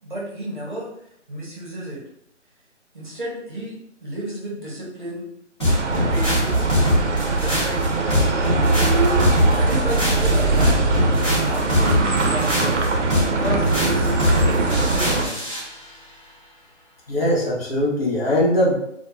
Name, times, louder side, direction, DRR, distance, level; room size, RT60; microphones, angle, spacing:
voice 1, 0.0-0.9 1.3-2.0 2.9-5.2 6.1-6.6 7.3-7.8 9.3-11.1 11.4-12.9 13.3-15.4, right 1 dB, 40° right, -6 dB, 0.8 m, -32 dB
sound 1, 5.6-15.7, left 1 dB, 20° left, 1.0 m, -22 dB
sound 2, 5.6-15.3, right 3 dB, 65° right, 0.5 m, -21 dB
voice 2, 17.1-18.8, left 1 dB, 50° left, -6 dB, 0.8 m, -20 dB
2.3 x 2.1 x 2.9 m, 0.74 s
hypercardioid pair, 180°, 37 cm